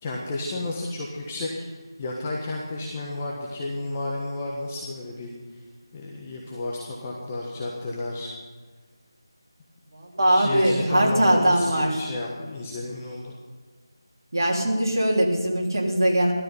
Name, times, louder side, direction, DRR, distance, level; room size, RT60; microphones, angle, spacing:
voice 1, 0.0-5.3 5.9-8.3 10.3-13.4, left 2 dB, 20° left, -3 dB, 1.3 m, -32 dB
voice 2, 9.9-12.0 14.3-16.3, right 1 dB, 50° right, -2 dB, 3.3 m, -21 dB
15.0 x 12.5 x 5.5 m, 1.4 s
figure-of-eight pair, 165°, 2 cm